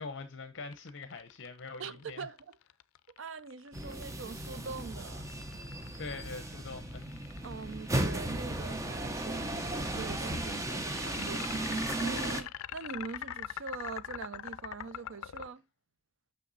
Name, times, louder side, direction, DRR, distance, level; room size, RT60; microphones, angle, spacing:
voice 1, 0.0-2.3 6.0-7.1, left 4 dB, 60° left, 0.7 m, -43 dB
sound 1, 0.7-7.9 9.5-15.5, left 11 dB, 85° left, 0.4 m, -43 dB
voice 2, 1.8-2.6 3.2-5.3 7.4-15.6, right 5 dB, 65° right, 0.6 m, -43 dB
sound 2, 3.7-12.4, right 1 dB, 15° right, 0.7 m, -35 dB
6.0 x 5.9 x 3.9 m
head